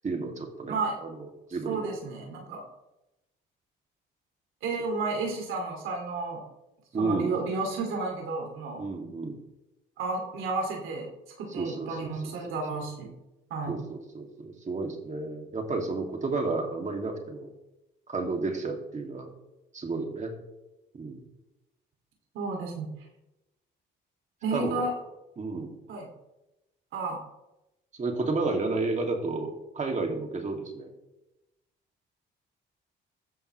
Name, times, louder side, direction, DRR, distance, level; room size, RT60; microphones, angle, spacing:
voice 1, 0.0-0.8 1.0-1.9 6.9-7.4 8.8-9.4 11.6-12.6 13.7-17.5 18.1-19.3 19.7-20.3 21.0-21.2 24.5-24.8 25.4-25.7 28.0-30.9, right 3 dB, 35° right, 2 dB, 2.4 m, -32 dB
voice 2, 0.7-1.0 1.7-2.6 4.6-6.4 7.0-8.8 10.0-11.1 11.4-13.1 13.5-13.9 22.3-22.9 24.4-24.9 25.9-26.1 26.9-27.2, right 3 dB, 85° right, 1 dB, 2.5 m, -32 dB
15.5 x 11.0 x 3.2 m, 0.97 s
cardioid pair, 90°, 20 cm